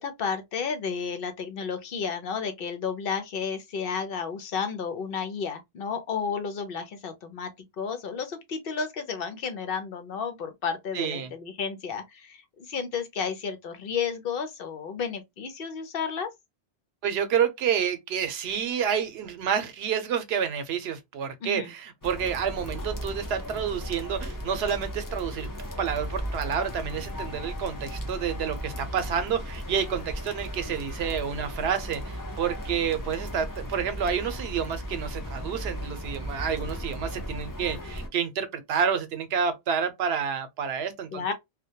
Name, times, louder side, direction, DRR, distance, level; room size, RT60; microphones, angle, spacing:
voice 1, 0.0-7.5 7.8-16.3 21.4-21.7 41.1-41.3, left 6 dB, 65° left, 0.8 m, -32 dB
voice 2, 10.9-11.3 17.0-25.5 25.8-41.3, right 7 dB, 90° right, 0.8 m, -29 dB
sound 1, 22.0-38.1, equal, 30° left, 0.4 m, -36 dB
2.2 x 2.1 x 2.7 m
omnidirectional pair, 1.0 m